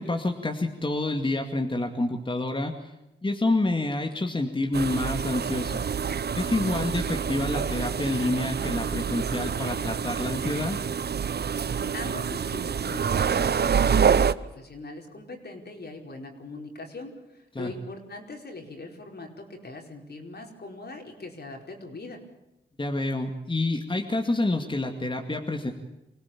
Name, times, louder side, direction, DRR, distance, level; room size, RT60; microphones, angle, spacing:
voice 1, 0.0-2.9 3.2-5.8 6.4-10.8 17.6-17.7 22.8-25.7, left 2 dB, 25° left, 3 dB, 2.4 m, -28 dB
sound 1, 4.7-14.3, right 7 dB, 60° right, 0.8 m, -27 dB
voice 2, 11.9-22.2, left 2 dB, 60° left, 2 dB, 4.9 m, -41 dB
25.0 x 17.5 x 8.7 m, 0.92 s
cardioid pair, 60°, 19 cm